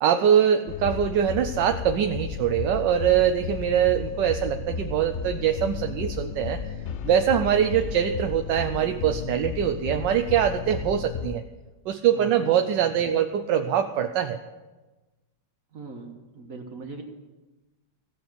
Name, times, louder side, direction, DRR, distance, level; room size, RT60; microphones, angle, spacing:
voice 1, 0.0-6.6 7.0-11.4 11.9-14.4, right 9 dB, 80° right, 7 dB, 1.3 m, -23 dB
sound 1, 0.7-11.4, left 7 dB, 90° left, 0.6 m, -34 dB
voice 2, 12.1-12.5 15.7-17.0, right 4 dB, 50° right, 3 dB, 1.6 m, -40 dB
16.0 x 6.8 x 8.1 m, 1.2 s
omnidirectional pair, 1.9 m